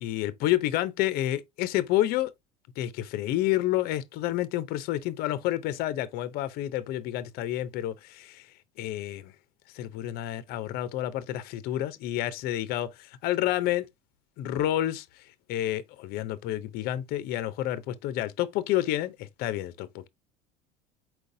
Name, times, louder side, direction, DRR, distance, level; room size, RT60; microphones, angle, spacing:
voice 1, 0.0-2.3 2.8-8.5 8.8-9.3 9.7-13.9 14.4-15.1 15.5-20.1, left 14 dB, 55° left, 0.6 m, -29 dB
4.5 x 3.9 x 2.6 m
supercardioid pair, 90°, 18 cm